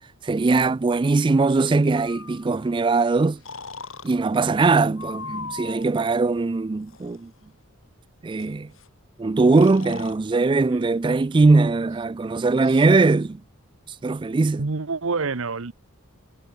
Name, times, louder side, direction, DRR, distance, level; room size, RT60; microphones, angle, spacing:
voice 1, 0.2-3.4 4.0-7.3 8.2-8.7 9.2-13.4 14.0-14.6, right 3 dB, 20° right, 0.3 m, -20 dB
Breathing, 2.0-2.7 3.4-4.1 5.0-5.9 6.8-7.2 8.4-8.5 8.7-8.9 9.5-10.2, left 4 dB, 65° left, 5.3 m, -38 dB
voice 2, 14.6-15.7, right 4 dB, 65° right, 0.9 m, -27 dB
head